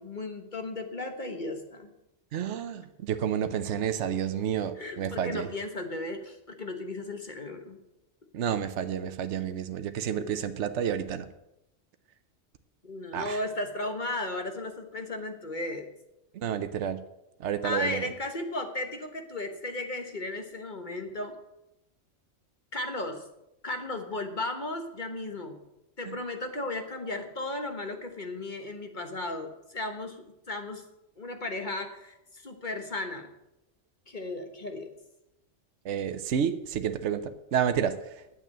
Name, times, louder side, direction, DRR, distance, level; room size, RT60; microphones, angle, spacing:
voice 1, 0.0-1.9 4.8-7.8 10.1-10.3 12.8-15.9 17.6-21.3 22.7-23.2 23.6-25.6 26.0-30.8 31.2-33.3 34.1-34.9, left 2 dB, 40° left, 5 dB, 1.4 m, -35 dB
voice 2, 2.3-5.5 8.3-11.3 13.1-13.4 16.3-17.0 17.4-18.1 26.0-26.2 35.8-38.1, right 8 dB, 75° right, 10 dB, 1.1 m, -30 dB
9.2 x 7.6 x 8.8 m, 0.88 s
omnidirectional pair, 1.2 m